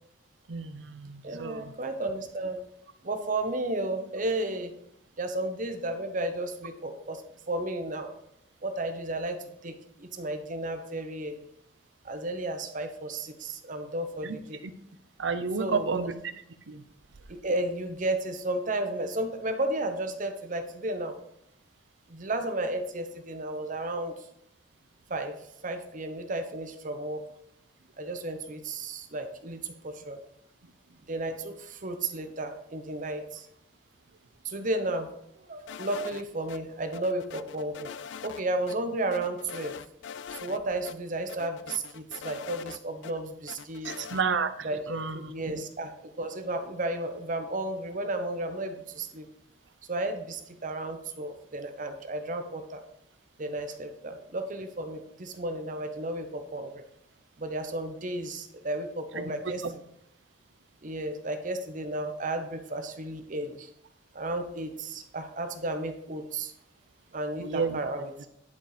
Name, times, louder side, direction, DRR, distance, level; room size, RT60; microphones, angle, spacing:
voice 1, 0.5-1.7 14.2-14.4 14.6-14.7 15.2-16.1 16.7-16.8 43.8-44.5 44.9-45.3 59.1-59.3 59.6-59.7 67.4-67.8, right 5 dB, 70° right, 11 dB, 0.7 m, -31 dB
voice 2, 1.2-2.6 3.0-4.7 5.2-7.2 7.5-8.1 8.6-11.5 12.0-14.6 15.6-16.1 17.3-21.1 22.1-24.2 25.1-25.3 25.6-27.2 28.0-30.2 31.1-33.5 34.4-35.1 35.5-37.9 38.2-39.8 40.3-44.1 44.6-49.3 49.9-52.8 53.4-56.8 57.4-59.6 60.8-63.7 64.1-66.5 67.1-68.1, right 2 dB, 45° right, 7 dB, 0.9 m, -33 dB
sound 1, 35.7-36.6 36.9-38.4 38.7-38.8 39.1-40.6 40.8-40.9 41.3-43.1 43.5-44.2, left 7 dB, 70° left, 0.4 m, -42 dB
10.5 x 4.3 x 4.9 m, 0.78 s
head